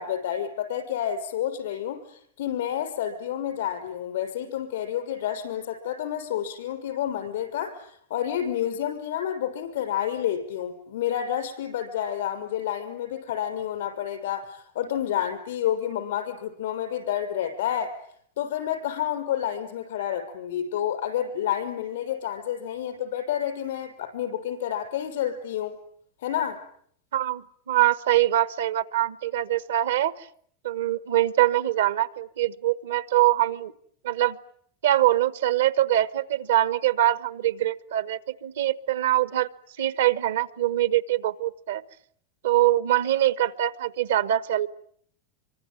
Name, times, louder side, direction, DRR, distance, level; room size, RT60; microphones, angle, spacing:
voice 1, 0.0-2.0 2.4-18.0 18.4-25.8 26.2-26.6, left 10 dB, 80° left, 8 dB, 6.3 m, -29 dB
voice 2, 27.1-30.3 30.6-33.7 34.0-34.4 34.8-39.5 39.8-41.8 42.4-44.7, right 13 dB, 85° right, 15 dB, 1.2 m, -23 dB
26.0 x 24.5 x 9.2 m, 0.66 s
hypercardioid pair, 100°, 0 cm